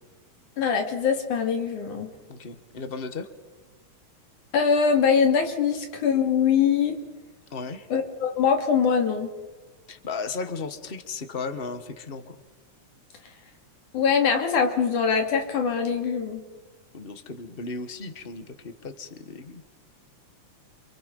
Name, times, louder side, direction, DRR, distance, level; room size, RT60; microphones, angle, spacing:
voice 1, 0.6-2.1 4.5-7.0 7.9-9.3 13.9-16.4, left 6 dB, 80° left, 4 dB, 4.2 m, -23 dB
voice 2, 2.3-3.3 7.5-7.9 9.9-12.4 16.9-19.6, left 4 dB, 30° left, 10 dB, 1.1 m, -35 dB
29.5 x 26.5 x 5.5 m, 1.2 s
omnidirectional pair, 3.4 m